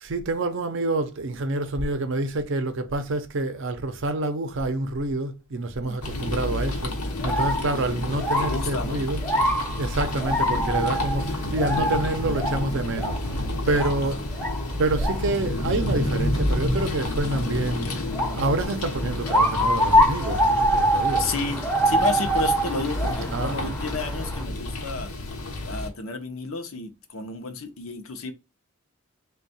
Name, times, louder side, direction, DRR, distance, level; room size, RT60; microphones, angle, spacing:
voice 1, 0.0-6.9 7.2-9.3 9.8-13.2 13.6-14.2 14.8-17.9 18.3-21.3 23.3-23.7, right 2 dB, 55° right, 0.5 m, -27 dB
sound 1, 6.0-25.9, left 1 dB, 90° left, 0.9 m, -30 dB
sound 2, 7.1-24.4, equal, 10° left, 0.6 m, -26 dB
voice 2, 8.4-9.0 13.7-14.2 21.2-25.1 25.6-28.3, left 4 dB, 70° left, 0.6 m, -31 dB
3.5 x 2.3 x 4.0 m
head